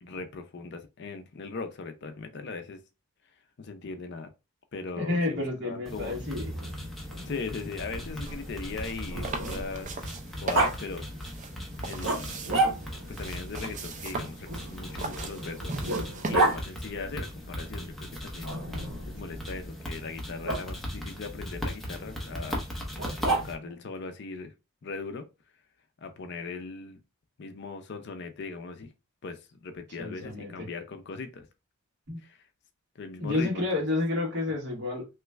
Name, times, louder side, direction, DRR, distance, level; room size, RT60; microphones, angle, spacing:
voice 1, 0.0-2.8 3.6-4.3 4.7-6.2 7.2-10.0 10.4-11.1 11.9-12.4 13.2-15.7 16.3-18.5 19.0-22.6 23.3-24.5 24.8-25.3 26.0-27.0 27.4-28.9 29.2-31.5 32.2-32.4 33.0-33.8, left 4 dB, 50° left, 0.5 m, -39 dB
voice 2, 5.0-6.5 30.0-30.5 32.1-32.2 33.2-35.1, left 2 dB, 50° right, 1.5 m, -30 dB
sound 1, 5.8-23.5, equal, ahead, 0.7 m, -38 dB
Growling, 6.4-9.8 10.5-10.7 12.0-13.1 14.5-16.6 18.4-19.1 20.4-20.6 23.0-23.8, right 2 dB, 65° right, 1.6 m, -30 dB
sound 2, 8.3-16.4, right 3 dB, 35° right, 0.4 m, -39 dB
3.0 x 2.3 x 3.3 m
head